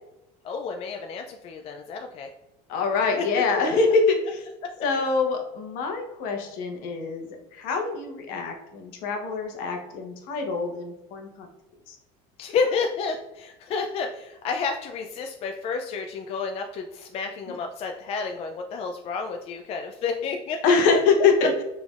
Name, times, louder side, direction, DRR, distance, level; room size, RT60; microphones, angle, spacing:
voice 1, 0.4-2.3 3.2-3.3 4.6-4.7 12.4-20.6, left 5 dB, 40° left, 4 dB, 0.4 m, -30 dB
voice 2, 2.7-4.5 4.8-11.5 11.9-12.0 20.6-21.5, left 4 dB, 65° left, 3 dB, 0.9 m, -24 dB
5.0 x 3.3 x 2.4 m, 0.93 s
supercardioid pair, 120°, 16 cm